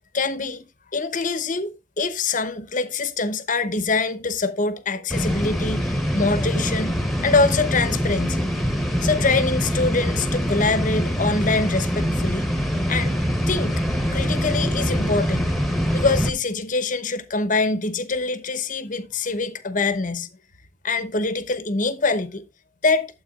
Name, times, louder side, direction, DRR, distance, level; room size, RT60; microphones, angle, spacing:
voice 1, 0.1-0.7 0.9-8.5 9.0-12.5 12.9-13.2 13.5-13.8 14.1-15.5 15.9-20.3 20.8-22.4 22.8-23.1, left 3 dB, 45° left, 1.0 m, -24 dB
sound 1, 5.1-16.3, equal, ahead, 1.2 m, -24 dB
12.0 x 7.9 x 2.4 m
head